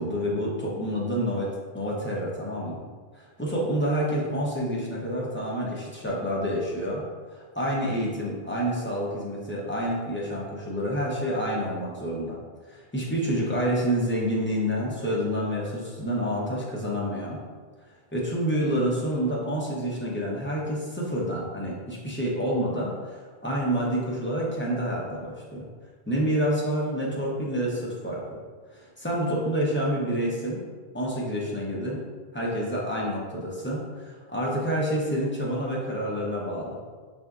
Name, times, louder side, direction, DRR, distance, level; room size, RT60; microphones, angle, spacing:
voice 1, 0.0-2.8 3.1-7.0 7.3-12.4 12.7-17.4 18.1-25.7 26.1-28.4 28.7-30.6 30.9-32.0 32.3-36.8, equal, 15° left, -5 dB, 0.6 m, -28 dB
6.6 x 2.6 x 2.3 m, 1.5 s
omnidirectional pair, 1.1 m